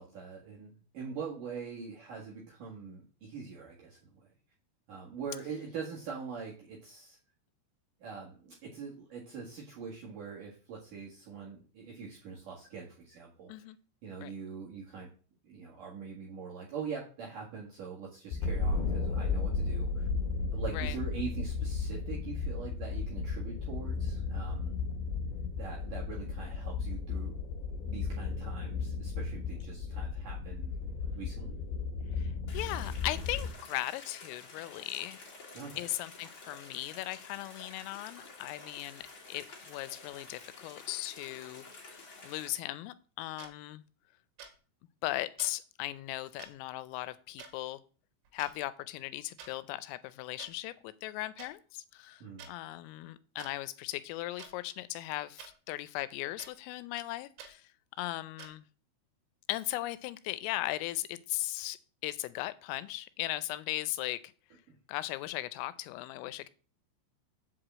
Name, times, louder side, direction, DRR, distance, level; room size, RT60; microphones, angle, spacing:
voice 1, 0.0-4.3 4.9-7.2 8.0-13.5 14.0-15.1 15.4-20.1 20.5-24.7 25.6-27.4 27.7-30.7 31.1-31.6 35.5-35.8 52.2-52.5 64.7-64.8, right 6 dB, 55° right, -4 dB, 2.5 m, -43 dB
sound 1, 18.3-33.5, left 4 dB, 70° left, 3.4 m, -34 dB
voice 2, 32.1-35.2 35.8-41.7 42.2-43.8 45.0-47.8 48.3-57.7 58.0-58.6 59.5-61.8 62.0-64.3 64.9-66.5, left 17 dB, 85° left, 15 dB, 3.3 m, -38 dB
sound 2, 32.5-42.5, left 3 dB, 35° left, 2.5 m, -50 dB
sound 3, 43.4-43.5 44.4-44.6 45.4-45.5 46.4-46.5 47.4-47.5 48.3-48.5 49.4-49.5 50.4-50.5 51.4-51.5 52.4-52.5 53.4-53.5 54.4-54.5 55.4-55.5 56.4-56.5 57.4-57.5 58.4-58.5, right 6 dB, 80° right, 4.2 m, -48 dB
8.1 x 4.9 x 7.4 m, 0.38 s
omnidirectional pair, 5.8 m